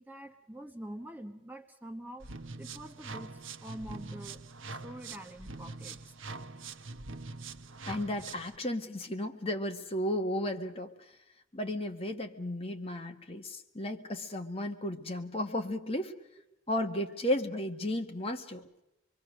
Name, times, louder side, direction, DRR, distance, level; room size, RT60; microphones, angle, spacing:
voice 1, 0.0-2.3 2.6-4.4 4.7-6.0, right 1 dB, 10° right, 5 dB, 1.1 m, -45 dB
sound 1, 2.2-8.6, right 3 dB, 85° right, 1.0 m, -44 dB
voice 2, 7.9-11.1 11.5-16.1 16.7-18.7, left 1 dB, 30° left, 5 dB, 1.7 m, -34 dB
25.5 x 23.5 x 6.5 m, 0.88 s
head